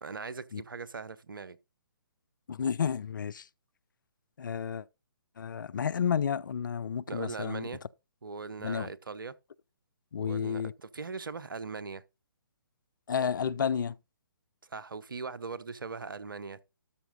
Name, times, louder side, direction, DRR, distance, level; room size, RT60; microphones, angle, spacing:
voice 1, 0.0-1.6 7.1-7.8 8.2-9.3 10.2-12.0 14.6-16.6, right 4 dB, 70° right, 0.8 m, -40 dB
voice 2, 2.5-3.5 4.4-4.8 5.4-7.6 8.6-8.9 10.1-10.7 13.1-13.9, left 7 dB, 60° left, 0.5 m, -31 dB
13.0 x 5.7 x 3.9 m
figure-of-eight pair, 135°, 12 cm